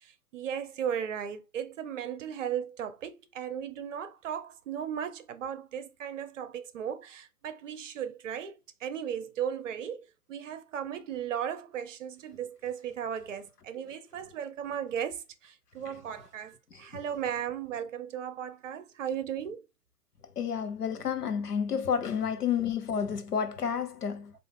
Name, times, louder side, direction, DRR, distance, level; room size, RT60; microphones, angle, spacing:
voice 1, 0.0-19.6, right 9 dB, 55° right, 0.9 m, -36 dB
voice 2, 20.4-24.3, left 7 dB, 85° left, 1.0 m, -30 dB
4.2 x 2.7 x 3.7 m
hypercardioid pair, 130°, 45 cm